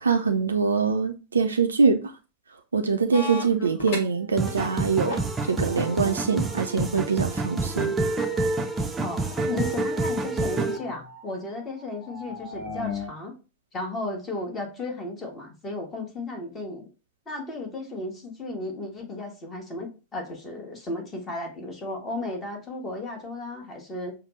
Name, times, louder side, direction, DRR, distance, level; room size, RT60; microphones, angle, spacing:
voice 1, 0.0-2.0 2.7-5.2 5.5-7.9, right 5 dB, 75° right, 0.4 m, -23 dB
sound 1, 3.1-4.5 4.8-13.1, left 3 dB, 45° left, 1.2 m, -39 dB
sound 2, 4.4-10.8, right 3 dB, 15° right, 0.5 m, -28 dB
voice 2, 9.0-13.3 13.7-16.9 17.3-24.1, left 2 dB, 20° left, 1.2 m, -34 dB
5.6 x 2.0 x 3.0 m
figure-of-eight pair, 90°, 0 cm